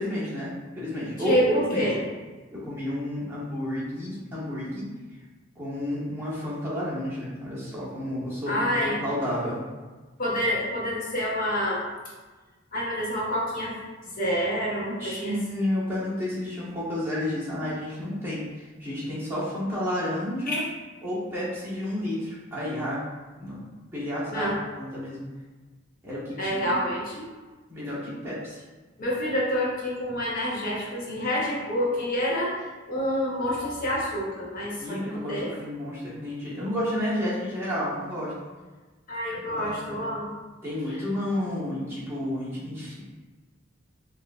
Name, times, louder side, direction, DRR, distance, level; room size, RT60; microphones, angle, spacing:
voice 1, 0.0-1.4 1.7-1.9 2.5-4.9 5.6-9.6 14.9-20.6 21.0-23.0 23.4-23.6 23.9-25.2 26.0-26.8 27.7-28.6 34.8-38.3 39.5-40.0 40.6-43.0, left 1 dB, 15° right, -9 dB, 1.3 m, -31 dB
voice 2, 1.2-1.9 8.5-9.0 10.2-11.8 12.7-13.7 14.2-15.4 20.5-20.7 24.3-24.5 26.4-27.3 29.0-32.5 32.9-35.5 39.1-40.3, equal, 45° left, -5 dB, 0.9 m, -27 dB
5.8 x 2.6 x 2.4 m, 1.3 s
head